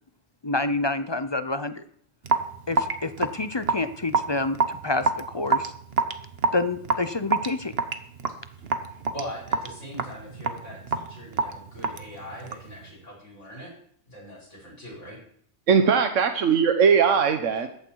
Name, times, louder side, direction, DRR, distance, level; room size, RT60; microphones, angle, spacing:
voice 1, 0.4-1.8 2.7-5.7 6.5-7.7, left 2 dB, 30° left, 12 dB, 0.5 m, -28 dB
Raindrop / Drip, 2.2-12.8, right 4 dB, 55° right, 1.2 m, -27 dB
voice 2, 9.1-13.7 14.1-15.2, equal, 75° left, -3 dB, 6.0 m, -41 dB
voice 3, 15.7-17.7, right 6 dB, 80° right, 7 dB, 1.4 m, -20 dB
14.5 x 12.5 x 4.7 m, 0.64 s
omnidirectional pair, 1.3 m